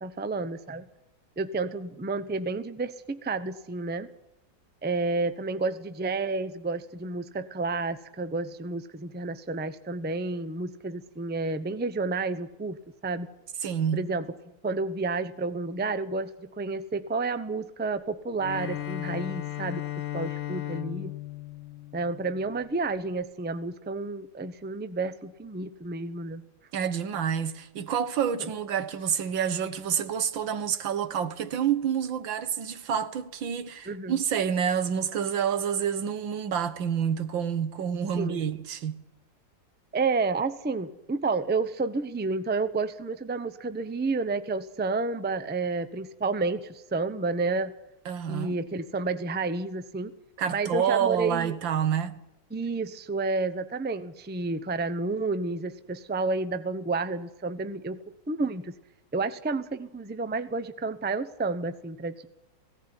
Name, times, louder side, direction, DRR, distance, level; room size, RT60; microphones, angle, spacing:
voice 1, 0.0-0.8 1.4-4.1 4.8-12.8 13.0-13.3 13.9-14.2 14.6-19.8 20.1-21.1 21.9-26.4 28.4-28.5 33.9-34.2 38.2-38.4 39.9-47.7 48.3-50.1 50.5-51.5 52.5-58.0 58.3-58.7 59.1-62.3, right 3 dB, 10° right, 0.5 m, -30 dB
voice 2, 13.6-14.1 26.7-39.0 48.1-48.6 50.4-52.2, right 8 dB, 85° right, 2.0 m, -28 dB
Bowed string instrument, 18.4-22.7, left 14 dB, 85° left, 2.0 m, -36 dB
17.5 x 17.0 x 9.8 m
omnidirectional pair, 2.0 m